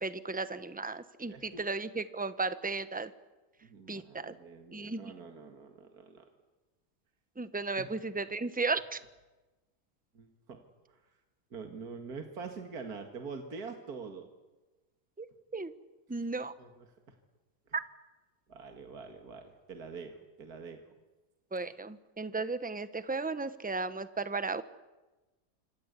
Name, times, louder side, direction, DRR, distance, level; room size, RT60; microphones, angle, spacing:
voice 1, 0.0-3.1 3.9-4.3 4.7-5.0 7.4-9.0 15.2-15.3 15.5-15.7 16.1-16.5 21.5-24.6, right 3 dB, 5° right, 13 dB, 0.7 m, -35 dB
voice 2, 1.3-1.6 3.6-6.3 7.8-7.9 10.1-10.6 10.9-11.0 11.5-14.3 16.1-16.3 16.6-16.9 18.5-20.8, right 5 dB, 65° right, 5 dB, 2.5 m, -45 dB
26.5 x 26.5 x 8.3 m, 1.1 s
omnidirectional pair, 1.8 m